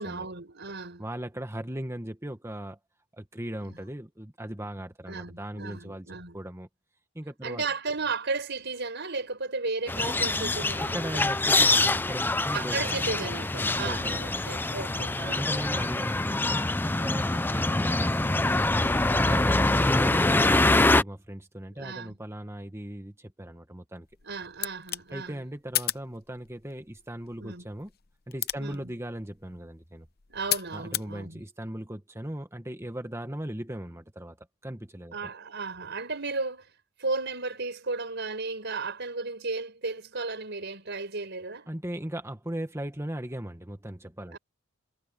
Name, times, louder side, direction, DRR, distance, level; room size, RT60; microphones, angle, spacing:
voice 1, 0.0-1.0 3.6-3.8 5.1-6.4 7.4-11.3 12.5-15.4 19.2-19.5 21.7-22.2 24.2-25.4 27.4-27.7 28.6-28.9 30.3-31.4 35.1-41.7 44.3-44.4, right 3 dB, 55° right, 5.4 m, -35 dB
voice 2, 1.0-2.8 3.1-6.7 7.1-7.6 10.6-13.1 13.5-14.4 15.4-18.7 19.0-24.1 25.1-27.9 28.3-30.1 30.7-35.3 41.7-44.4, right 1 dB, 10° right, 1.5 m, -38 dB
sound 1, 9.9-21.0, left 2 dB, 10° left, 0.4 m, -25 dB
sound 2, 24.0-31.1, left 14 dB, 45° left, 0.7 m, -36 dB
head